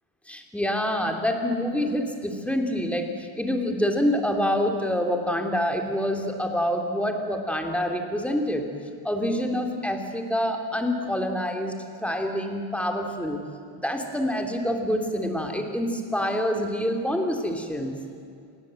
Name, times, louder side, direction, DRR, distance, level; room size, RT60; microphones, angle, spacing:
voice 1, 0.3-8.7 9.0-13.4 13.7-17.9, equal, 5° left, 3 dB, 2.9 m, -26 dB
27.5 x 20.5 x 7.7 m, 2.4 s
cardioid pair, 145°, 43 cm